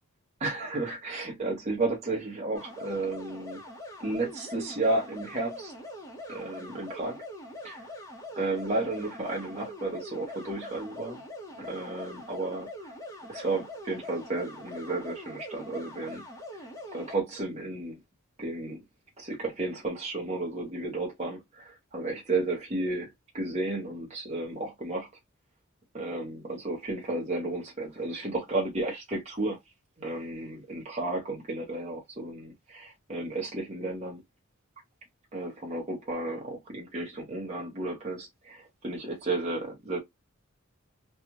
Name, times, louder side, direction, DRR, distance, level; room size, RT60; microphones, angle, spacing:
voice 1, 0.4-3.6 4.0-5.7 6.3-7.2 7.6-7.8 8.4-11.2 11.6-12.7 13.3-16.2 16.9-18.0 18.4-18.8 19.2-23.1 23.3-25.1 25.9-29.6 30.0-34.2 35.3-40.0, right 2 dB, 30° right, 1.2 m, -33 dB
sound 1, 2.5-17.2, left 1 dB, 15° left, 1.0 m, -43 dB
3.3 x 2.4 x 3.0 m
head